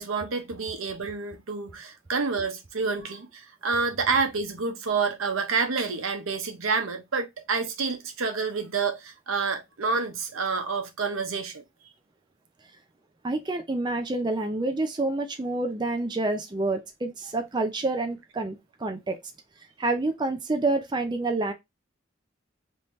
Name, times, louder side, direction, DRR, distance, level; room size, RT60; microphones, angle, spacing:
voice 1, 0.0-11.6, right 4 dB, 90° right, 0.8 m, -28 dB
voice 2, 13.2-19.2 19.8-21.5, right 2 dB, 20° right, 0.5 m, -28 dB
3.5 x 2.8 x 3.1 m
head